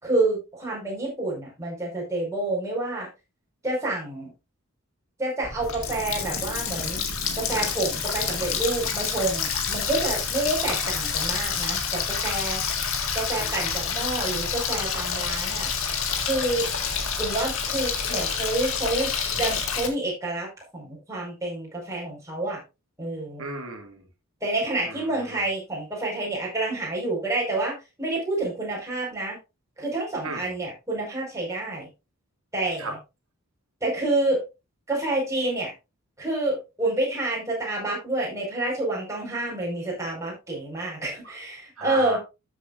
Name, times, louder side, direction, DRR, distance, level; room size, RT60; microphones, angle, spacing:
voice 1, 0.0-3.1 3.6-4.3 5.2-7.1 7.3-12.6 13.1-15.7 16.2-16.7 17.2-19.1 19.4-22.6 23.0-23.4 24.4-29.4 29.8-31.9 32.5-33.0 33.8-34.4 34.9-35.7 36.2-42.2, right 2 dB, 15° right, -3 dB, 5.1 m, -28 dB
Water tap faucet, 5.4-19.9, left 6 dB, 65° left, 1.9 m, -28 dB
voice 2, 23.4-24.0 24.8-25.3 30.2-30.5 32.8-32.9 41.8-42.2, right 3 dB, 65° right, 3 dB, 2.4 m, -34 dB
13.0 x 7.5 x 2.6 m, 0.26 s
head